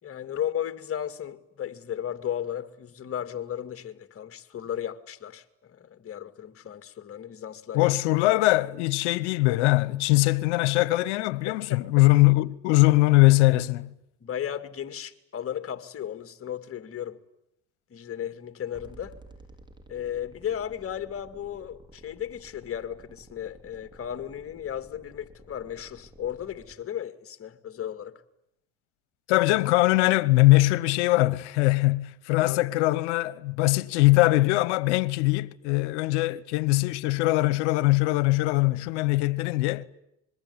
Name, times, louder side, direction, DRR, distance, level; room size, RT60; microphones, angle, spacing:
voice 1, 0.0-7.9 11.5-11.8 14.2-17.2 17.9-19.2 19.9-28.2 32.4-32.6, left 10 dB, 40° left, 2.4 m, -35 dB
voice 2, 7.7-13.9 29.3-39.8, left 20 dB, 85° left, 1.1 m, -22 dB
sound 1, 18.7-26.7, right 1 dB, 15° right, 5.3 m, -52 dB
26.0 x 22.5 x 9.8 m
supercardioid pair, 75°, 34 cm